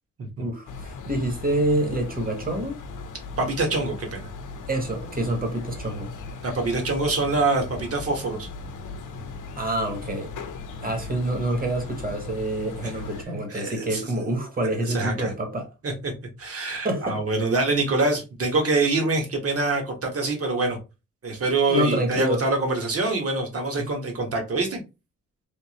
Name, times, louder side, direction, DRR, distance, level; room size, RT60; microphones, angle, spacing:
voice 1, 0.4-2.8 4.7-6.1 9.5-10.3 10.8-15.7 16.8-17.2 21.7-22.4 23.8-23.9, right 1 dB, 25° right, 1.3 m, -27 dB
sound 1, 0.7-13.2, left 3 dB, 70° left, 0.7 m, -38 dB
voice 2, 3.4-4.3 6.4-8.5 10.8-11.0 12.8-12.9 13.5-14.4 14.8-15.3 15.8-16.1 16.4-20.8 21.2-24.8, right 3 dB, 45° right, 1.4 m, -25 dB
3.5 x 2.6 x 3.0 m
cardioid pair, 95°, 32 cm